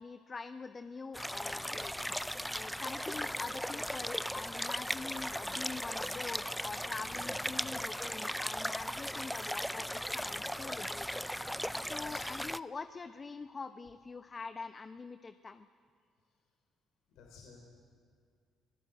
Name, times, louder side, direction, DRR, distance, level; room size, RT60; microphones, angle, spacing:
voice 1, 0.0-1.9 2.5-11.2 11.5-15.7, left 4 dB, 35° left, 10 dB, 0.8 m, -44 dB
sound 1, 1.1-12.6, equal, ahead, 0.5 m, -37 dB
voice 2, 7.0-7.8 11.8-12.3 16.3-16.4 17.1-17.6, left 4 dB, 75° left, 0 dB, 3.5 m, -56 dB
26.0 x 16.0 x 7.9 m, 2.2 s
hypercardioid pair, 50°, 0 cm